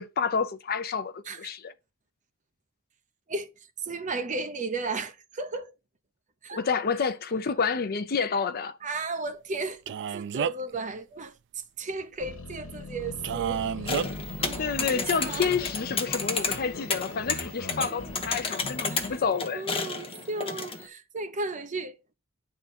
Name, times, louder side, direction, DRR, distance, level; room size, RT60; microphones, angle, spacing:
voice 1, 0.0-1.7 6.5-8.8 14.6-19.6, left 5 dB, 45° left, 0.6 m, -29 dB
voice 2, 3.8-5.7 6.4-6.6 8.8-15.5 18.9-19.1 19.5-22.1, right 3 dB, 35° right, 0.8 m, -35 dB
Male speech man speaking, 9.9-10.7 13.2-14.1, right 8 dB, 55° right, 0.3 m, -30 dB
sound 1, 12.2-19.4, left 2 dB, 65° left, 1.5 m, -40 dB
sound 2, 13.9-20.9, left 4 dB, 25° left, 1.2 m, -32 dB
10.0 x 3.8 x 4.2 m
head